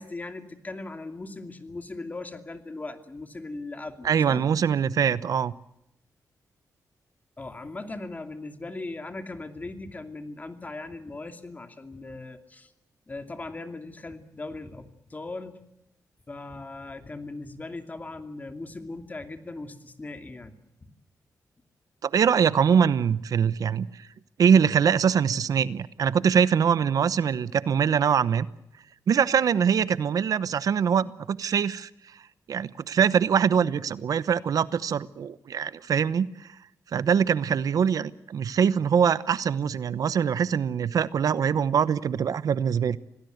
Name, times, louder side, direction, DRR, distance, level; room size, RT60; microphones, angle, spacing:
voice 1, 0.0-4.5 7.4-12.7 13.1-15.5 16.3-20.5 20.8-20.9, left 2 dB, 25° left, 7 dB, 2.6 m, -39 dB
voice 2, 4.0-5.5 22.0-24.1 24.4-28.5 29.1-31.9 32.5-36.3 36.9-43.0, right 7 dB, 70° right, 16 dB, 0.9 m, -23 dB
27.0 x 18.5 x 8.0 m, 0.81 s
cardioid pair, 105°, 6 cm